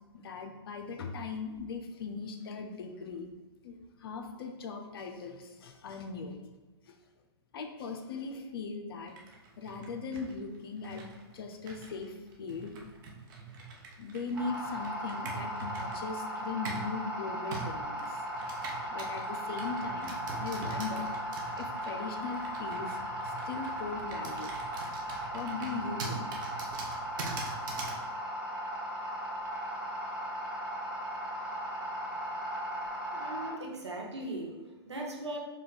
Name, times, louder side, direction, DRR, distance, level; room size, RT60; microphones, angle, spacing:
voice 1, 0.0-3.3 3.6-6.4 6.9-7.0 7.5-9.2 9.6-12.8 14.0-18.2 18.9-21.1 21.6-24.5 25.3-26.4, left 4 dB, 60° left, 4 dB, 0.7 m, -39 dB
Computer keyboard, 9.1-16.9 17.5-28.0, right 3 dB, 50° right, 0.9 m, -44 dB
sound 1, 14.3-33.5, equal, 5° right, 1.4 m, -37 dB
voice 2, 33.1-34.5 34.9-35.4, right 2 dB, 90° right, 0 dB, 1.0 m, -38 dB
4.9 x 2.4 x 3.8 m, 1.2 s
hypercardioid pair, 125°, 14 cm